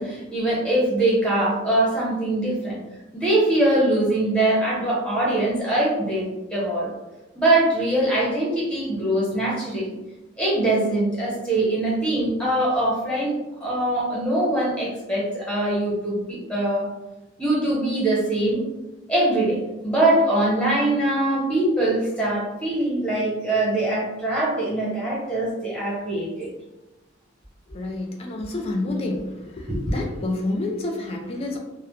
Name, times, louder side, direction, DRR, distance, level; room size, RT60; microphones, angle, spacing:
voice 1, 0.0-2.8 3.1-6.2 6.5-6.9 7.3-10.0 10.4-16.9 17.4-18.6 19.1-26.5 29.7-29.9, right 1 dB, 5° left, -6 dB, 0.8 m, -22 dB
voice 2, 27.7-29.2 29.6-31.6, left 2 dB, 30° left, 2 dB, 0.3 m, -28 dB
2.1 x 2.0 x 3.0 m, 1.0 s
head